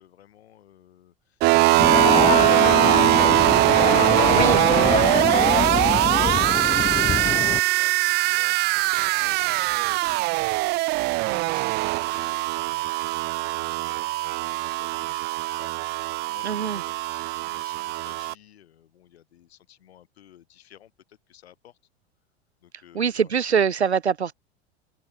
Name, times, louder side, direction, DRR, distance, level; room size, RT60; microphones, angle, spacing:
voice 1, 0.0-3.5 4.2-12.8 13.0-21.8 22.6-23.4, left 11 dB, 75° left, 6.1 m, -52 dB
sound 1, 1.4-18.3, right 21 dB, 35° right, 0.4 m, -21 dB
sound 2, 1.8-7.6, left 7 dB, 20° left, 0.9 m, -24 dB
voice 2, 4.3-4.6 16.4-16.8 22.9-24.3, right 7 dB, 90° right, 1.3 m, -23 dB
hypercardioid pair, 85°, 32 cm